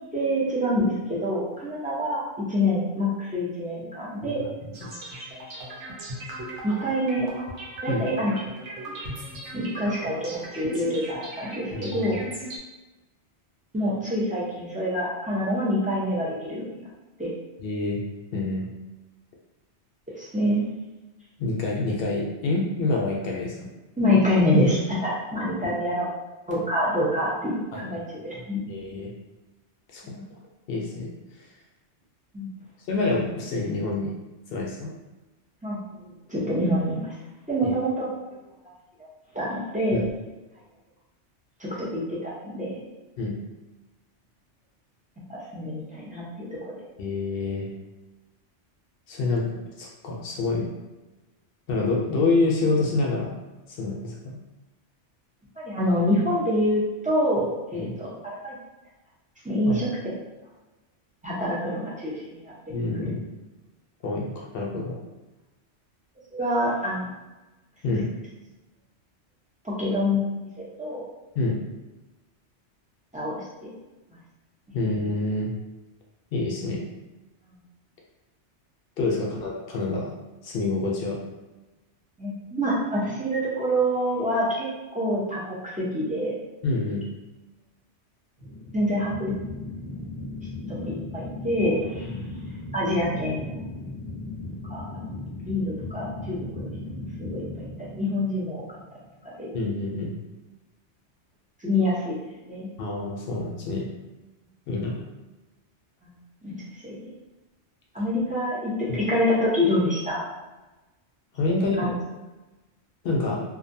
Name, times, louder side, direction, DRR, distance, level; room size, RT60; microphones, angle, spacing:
voice 1, 0.1-4.4 6.6-7.3 7.8-8.4 9.5-12.2 13.7-16.7 17.2-17.3 20.1-20.7 24.0-26.1 26.5-28.6 30.0-30.3 32.3-32.5 35.6-37.1 37.5-38.1 39.3-40.0 41.6-42.8 45.3-46.5 55.6-58.6 59.4-60.1 61.2-62.5 66.3-67.1 67.9-68.0 69.6-70.5 70.8-71.0 73.1-73.7 74.1-74.2 74.7-74.8 77.5-77.6 82.2-84.7 84.9-86.3 88.7-89.4 90.7-92.1 92.7-93.6 94.7-95.1 95.5-98.6 99.4-99.5 101.6-102.2 102.5-102.7 106.0-106.1 106.4-107.0 107.9-110.2 111.5-111.9, left 1 dB, 10° right, -8 dB, 0.4 m, -26 dB
sound 1, 4.7-12.6, right 1 dB, 85° right, 1.0 m, -38 dB
voice 2, 11.7-12.2 17.6-18.0 18.3-18.7 21.4-23.7 25.6-25.8 27.7-28.0 28.3-29.1 29.9-30.2 30.7-31.1 32.9-34.1 34.5-34.9 37.6-37.7 39.9-40.0 43.2-43.4 47.0-47.7 49.1-49.4 49.8-50.7 51.7-53.3 53.8-54.4 57.8-57.9 59.7-59.8 62.7-63.2 64.0-65.0 67.8-68.1 71.4-71.6 74.7-75.5 76.3-76.8 79.0-80.1 80.4-81.2 86.6-87.0 92.1-92.2 99.5-100.1 102.8-103.9 104.7-105.0 108.0-108.1 111.3-111.8 113.0-113.4, left 3 dB, 60° left, -2 dB, 0.7 m, -27 dB
sound 2, 88.4-99.3, left 2 dB, 35° right, 0.9 m, -37 dB
2.6 x 2.2 x 2.6 m, 1.1 s
omnidirectional pair, 1.2 m